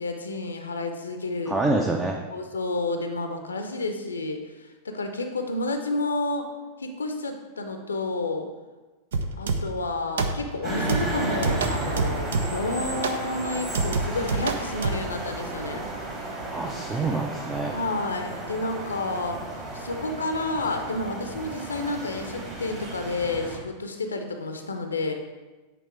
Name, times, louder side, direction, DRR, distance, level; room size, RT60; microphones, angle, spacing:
voice 1, 0.0-1.6 2.3-6.5 6.8-8.5 9.4-15.9 17.7-19.4 19.7-25.1, left 2 dB, 75° left, 5 dB, 0.6 m, -30 dB
voice 2, 1.5-2.2 16.5-17.8, right 2 dB, 15° right, 2 dB, 0.6 m, -26 dB
sound 1, 9.1-9.8 10.2-10.6 10.9-12.7 13.0-13.3 13.7-15.1, right 3 dB, 65° right, 0.5 m, -28 dB
sound 2, 10.6-23.6, right 2 dB, 30° right, 2.1 m, -33 dB
8.4 x 3.6 x 4.6 m, 1.2 s
figure-of-eight pair, 90°, 0 cm